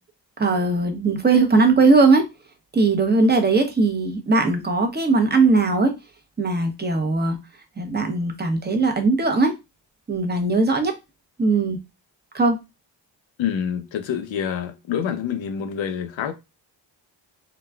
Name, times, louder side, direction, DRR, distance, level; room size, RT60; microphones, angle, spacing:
voice 1, 0.4-2.2 2.7-5.9 6.4-7.4 7.8-9.5 10.1-10.9 11.4-11.8 12.3-12.6, right 3 dB, 20° right, 0.8 m, -19 dB
voice 2, 13.4-16.3, left 8 dB, 80° left, 0.6 m, -27 dB
3.8 x 2.3 x 2.2 m
cardioid pair, 65°, 45 cm